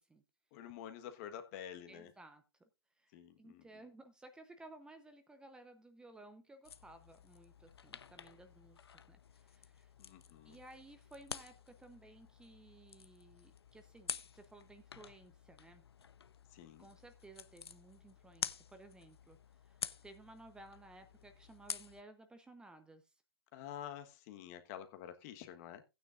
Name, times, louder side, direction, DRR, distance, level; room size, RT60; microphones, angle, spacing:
voice 1, 0.5-2.1 3.1-3.6 10.0-10.6 16.5-16.9 23.5-25.8, left 10 dB, 35° left, 1.3 m, -49 dB
voice 2, 1.9-2.4 3.0-9.9 10.4-15.8 16.8-23.1, right 2 dB, 5° right, 0.8 m, -57 dB
sound 1, 6.6-22.0, left 7 dB, 80° left, 0.7 m, -49 dB
15.5 x 9.4 x 2.5 m
hypercardioid pair, 130°, 13 cm